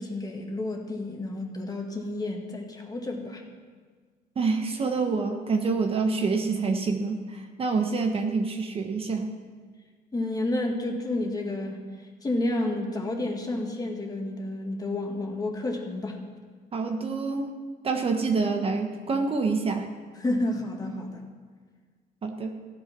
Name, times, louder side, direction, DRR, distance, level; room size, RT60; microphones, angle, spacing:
voice 1, 0.0-3.4 10.1-16.2 20.2-21.2, left 2 dB, 20° left, 2 dB, 2.0 m, -30 dB
voice 2, 4.4-9.3 16.7-17.5 17.8-19.9 22.2-22.5, right 4 dB, 35° right, 4 dB, 1.1 m, -27 dB
15.0 x 9.0 x 6.0 m, 1.5 s
cardioid pair, 110°, 17 cm